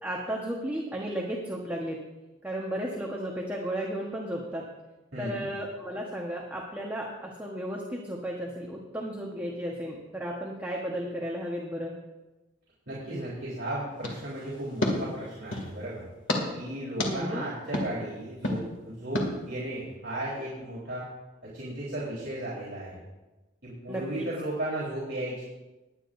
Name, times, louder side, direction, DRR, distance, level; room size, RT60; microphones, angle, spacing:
voice 1, 0.0-2.0 2.4-4.7 5.2-12.0 17.0-17.5 23.9-24.3, equal, 10° right, -2 dB, 1.2 m, -34 dB
voice 2, 5.1-5.5 12.9-16.0 16.5-21.1 21.4-23.0 23.6-25.4, right 1 dB, 60° right, -8 dB, 3.8 m, -35 dB
sound 1, 14.0-15.7 16.3-16.4 17.0-17.1 17.7-17.9 18.4-18.6 19.1-19.3, left 1 dB, 80° left, 2.3 m, -30 dB
20.5 x 10.0 x 2.6 m, 1.1 s
head